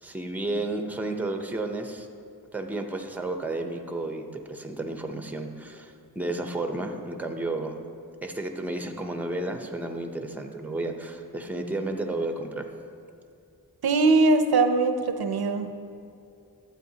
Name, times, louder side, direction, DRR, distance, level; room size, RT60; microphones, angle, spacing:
voice 1, 0.0-2.1 2.5-7.8 8.2-12.7, right 2 dB, 5° right, 5 dB, 0.7 m, -32 dB
voice 2, 13.8-15.9, right 3 dB, 75° right, 8 dB, 0.6 m, -22 dB
12.5 x 7.9 x 2.8 m, 2.5 s
wide cardioid pair, 75°, 38 cm